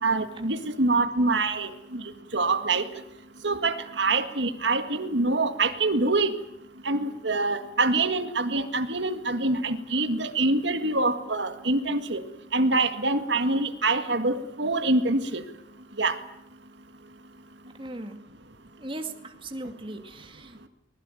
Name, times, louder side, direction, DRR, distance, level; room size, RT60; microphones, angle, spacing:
voice 1, 0.0-2.0 2.3-2.9 3.4-6.3 6.9-12.2 12.5-15.4 16.0-16.2, right 3 dB, 70° right, 8 dB, 1.9 m, -25 dB
voice 2, 17.7-18.2 18.8-20.7, right 2 dB, 25° right, 6 dB, 2.2 m, -38 dB
24.5 x 20.5 x 9.1 m, 0.79 s
head